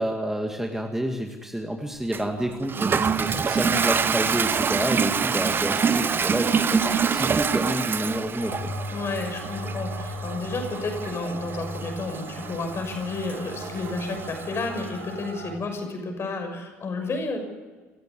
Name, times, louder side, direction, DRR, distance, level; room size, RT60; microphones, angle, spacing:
voice 1, 0.0-8.6, right 1 dB, 5° right, 3 dB, 2.2 m, -29 dB
Toilet flush, 2.1-14.9, right 6 dB, 25° right, 1.1 m, -26 dB
sound 1, 8.4-15.6, equal, 85° right, 3.4 m, -37 dB
voice 2, 8.9-17.4, left 3 dB, 35° left, 5 dB, 6.5 m, -31 dB
26.5 x 16.0 x 8.2 m, 1.4 s
figure-of-eight pair, 60°, 8 cm